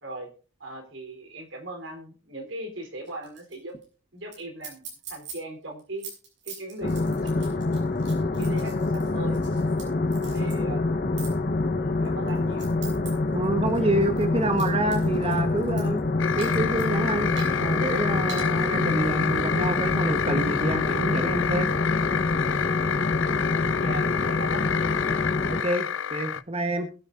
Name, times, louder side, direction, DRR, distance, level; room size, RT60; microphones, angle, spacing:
voice 1, 0.6-3.8 4.1-4.8 5.1-6.1 6.4-7.5 8.3-9.4 10.3-10.9 11.8-12.8 23.8-25.2, right 2 dB, 80° right, 4 dB, 3.8 m, -39 dB
sound 1, 3.1-3.5 3.8-3.9 4.3-4.4 4.6-5.3 5.8-9.8 10.1-10.6 11.2-11.3 12.0-13.1 13.4-16.0 16.4-16.9 17.4-17.6 18.3-18.4, right 5 dB, 65° right, 6.5 m, -41 dB
sound 2, 6.8-25.6, left 2 dB, 50° left, 1.1 m, -26 dB
voice 2, 13.3-16.0 16.4-21.7 25.5-26.9, right 1 dB, 30° right, 7 dB, 1.2 m, -27 dB
sound 3, 16.2-26.4, left 8 dB, 85° left, 0.6 m, -29 dB
22.0 x 8.8 x 2.6 m, 0.38 s
head